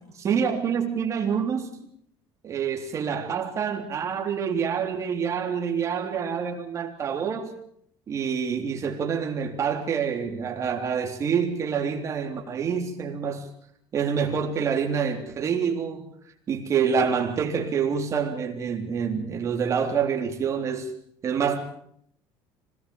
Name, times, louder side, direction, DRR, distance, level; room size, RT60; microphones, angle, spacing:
voice 1, 0.2-1.8 2.4-7.5 8.1-13.5 13.9-16.1 16.5-20.9 21.2-21.6, right 6 dB, 30° right, 3.5 m, -27 dB
25.5 x 18.5 x 7.2 m
cardioid pair, 160°, 10 cm